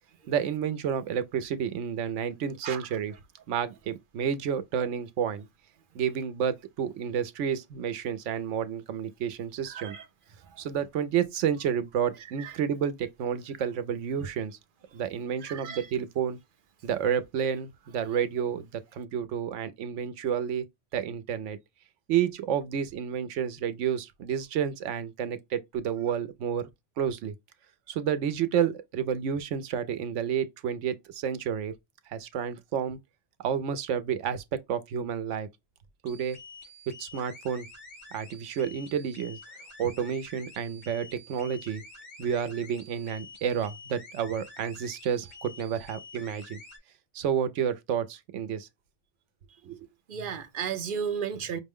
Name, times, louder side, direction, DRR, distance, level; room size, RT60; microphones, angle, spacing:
voice 1, 0.3-3.1 3.5-5.5 5.9-10.0 10.6-14.6 14.9-16.4 16.8-20.7 20.9-21.6 22.1-26.7 27.0-27.3 27.9-31.7 32.1-33.0 33.4-35.5 36.0-36.4 36.9-37.7 38.1-39.4 39.8-41.8 42.2-46.6 47.1-48.7 49.6-49.8, right 8 dB, 75° right, 0.9 m, -30 dB
voice 2, 9.6-10.1 10.4-10.6 12.4-12.6 15.4-15.9 50.1-51.6, right 7 dB, 50° right, 0.7 m, -34 dB
sound 1, 36.1-46.8, left 2 dB, 60° left, 3.4 m, -48 dB
5.7 x 2.1 x 3.5 m
omnidirectional pair, 1.3 m